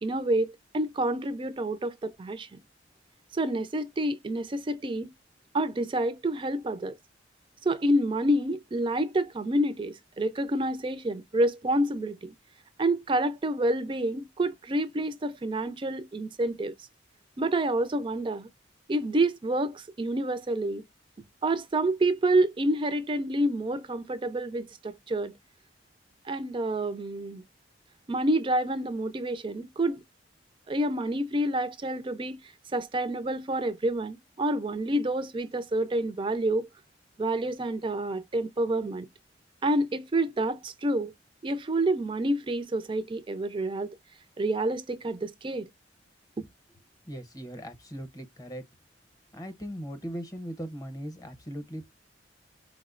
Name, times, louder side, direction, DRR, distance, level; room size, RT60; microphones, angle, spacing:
voice 1, 0.0-2.6 3.3-5.1 5.5-6.9 7.6-12.3 12.8-16.7 17.4-18.5 18.9-20.8 21.4-25.3 26.3-27.4 28.1-30.0 30.7-32.4 32.7-36.7 37.2-39.1 39.6-41.1 41.4-43.9 44.4-45.7, right 1 dB, 25° right, 0.3 m, -28 dB
voice 2, 47.1-48.6 49.3-51.9, equal, 20° left, 0.7 m, -39 dB
4.5 x 2.0 x 2.4 m
head